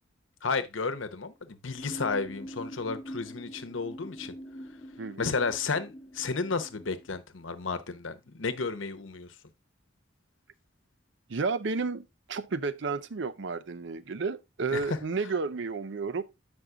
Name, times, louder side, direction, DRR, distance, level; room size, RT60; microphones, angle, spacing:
voice 1, 0.4-4.3 5.2-9.3 14.7-15.0, left 4 dB, 85° left, 0.9 m, -32 dB
sound 1, 1.8-7.1, equal, 30° left, 0.9 m, -44 dB
voice 2, 5.0-5.3 11.3-16.2, right 4 dB, 65° right, 0.6 m, -32 dB
8.1 x 5.3 x 3.6 m
head